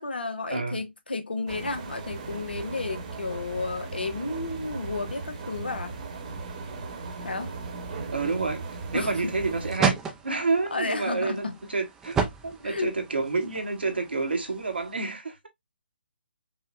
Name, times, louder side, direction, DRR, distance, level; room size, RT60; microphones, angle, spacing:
voice 1, 0.0-6.0 7.2-7.5 8.9-9.3 10.7-11.5 12.6-12.9, left 3 dB, 70° left, 1.1 m, -32 dB
sound 1, 1.5-9.8, right 3 dB, 40° right, 1.2 m, -37 dB
voice 2, 8.1-10.0 10.2-15.4, right 3 dB, 75° right, 1.4 m, -29 dB
sound 2, 8.6-15.0, right 5 dB, 10° right, 0.6 m, -33 dB
5.6 x 2.4 x 2.5 m
figure-of-eight pair, 140°, 6 cm